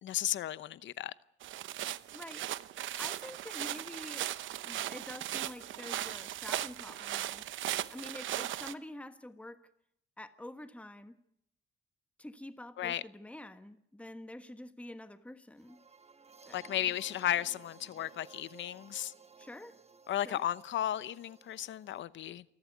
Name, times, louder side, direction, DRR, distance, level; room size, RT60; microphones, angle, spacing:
voice 1, 0.0-1.1 12.8-13.0 16.5-19.1 20.1-22.4, left 12 dB, 70° left, 0.8 m, -34 dB
sound 1, 1.4-8.7, right 13 dB, 75° right, 0.9 m, -38 dB
voice 2, 2.1-2.5 2.9-4.3 4.6-7.4 7.9-9.7 10.2-11.1 12.2-15.8 16.5-16.7 19.4-19.8 20.2-20.5, left 1 dB, 5° left, 1.4 m, -47 dB
sound 2, 15.6-22.0, right 4 dB, 30° right, 1.9 m, -56 dB
28.0 x 12.0 x 9.4 m
cardioid pair, 90°, 20 cm